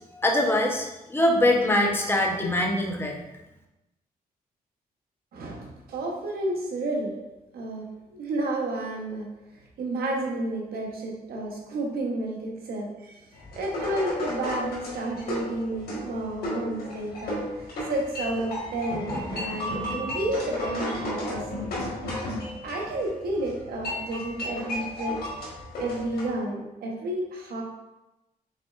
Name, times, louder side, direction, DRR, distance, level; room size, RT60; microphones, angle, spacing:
voice 1, 0.1-3.2, left 1 dB, 15° left, 0 dB, 0.9 m, -23 dB
voice 2, 5.3-7.1 7.5-9.3 9.8-13.2 13.6-21.4 22.6-25.2 25.8-27.6, right 2 dB, 80° right, 0 dB, 1.0 m, -31 dB
sound 1, 13.3-26.3, left 1 dB, 90° left, 1.4 m, -34 dB
5.3 x 4.0 x 2.5 m, 0.96 s
cardioid pair, 75°, 16 cm